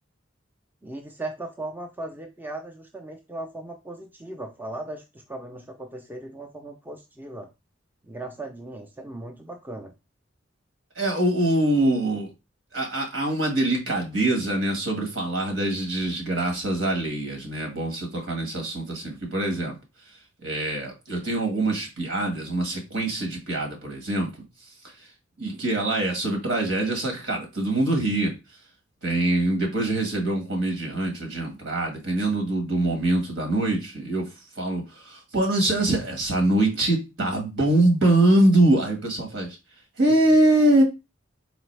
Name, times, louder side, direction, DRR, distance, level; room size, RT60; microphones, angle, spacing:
voice 1, 0.8-7.5 8.1-9.9, right 2 dB, 10° right, 2 dB, 0.5 m, -37 dB
voice 2, 10.9-12.3 12.7-19.8 20.4-24.3 25.4-28.3 29.0-34.3 34.6-39.6 40.0-40.8, right 1 dB, 75° right, 2 dB, 1.6 m, -23 dB
4.0 x 3.4 x 3.3 m, 0.25 s
head